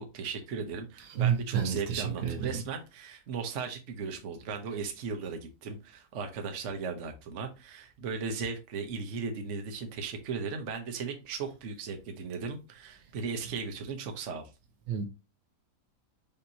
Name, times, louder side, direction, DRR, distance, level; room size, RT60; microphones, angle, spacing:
voice 1, 0.0-14.5, right 5 dB, 55° right, 1.0 m, -37 dB
voice 2, 1.2-2.6 14.9-15.1, right 8 dB, 75° right, 1.2 m, -29 dB
5.2 x 2.9 x 2.7 m
omnidirectional pair, 1.8 m